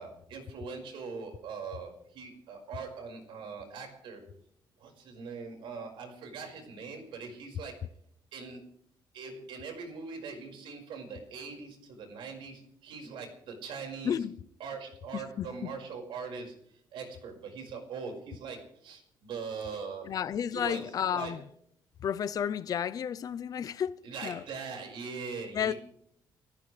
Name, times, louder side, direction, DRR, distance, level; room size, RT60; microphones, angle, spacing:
voice 1, 0.0-4.2 4.8-7.7 8.3-8.6 9.1-14.2 14.6-16.5 16.9-20.1 20.5-21.4 24.0-25.7, right 5 dB, 75° right, 5.3 m, -41 dB
voice 2, 14.0-14.4 15.1-15.7 20.1-21.4 22.0-24.4 25.5-25.7, left 8 dB, 45° left, 0.6 m, -32 dB
29.5 x 14.5 x 3.3 m
cardioid pair, 155°, 9 cm